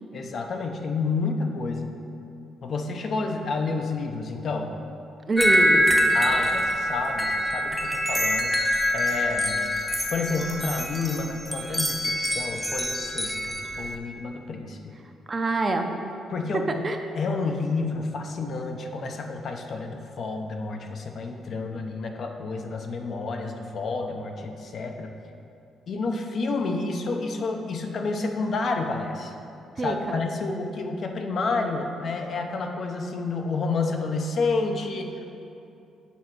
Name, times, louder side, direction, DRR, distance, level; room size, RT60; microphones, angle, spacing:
voice 1, 0.1-1.9 2.6-4.7 6.1-8.5 8.9-9.6 10.1-14.8 16.3-16.8 17.2-25.1 25.9-29.3 29.8-35.3, left 3 dB, 55° left, 3 dB, 0.7 m, -29 dB
voice 2, 5.3-5.9 15.3-15.9 16.5-17.0 29.8-30.2, right 3 dB, 35° right, 5 dB, 0.7 m, -26 dB
sound 1, 5.4-14.0, equal, 5° left, 0.8 m, -25 dB
7.1 x 4.2 x 6.1 m, 2.7 s
cardioid pair, 90°, 0 cm